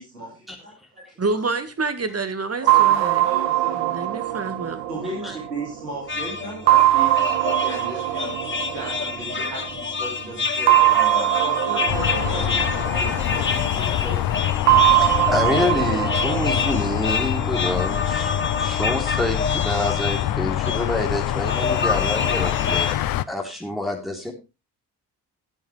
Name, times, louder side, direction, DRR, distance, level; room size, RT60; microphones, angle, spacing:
voice 1, 1.2-3.3 3.7-4.8, right 3 dB, 30° right, 11 dB, 1.8 m, -28 dB
voice 2, 2.6-4.0 4.9-8.3 8.7-14.4, right 1 dB, 90° right, -3 dB, 2.9 m, -35 dB
sound 1, 2.7-6.0 6.7-9.6 10.7-13.8 14.7-17.8, right 14 dB, 70° right, 1.0 m, -21 dB
sound 2, 6.1-22.9, left 5 dB, 25° left, 1.4 m, -28 dB
sound 3, 11.9-23.2, left 13 dB, 50° left, 0.7 m, -25 dB
voice 3, 14.9-24.3, left 1 dB, ahead, 0 dB, 3.5 m, -27 dB
18.0 x 7.3 x 3.3 m, 0.27 s
figure-of-eight pair, 40°, 46 cm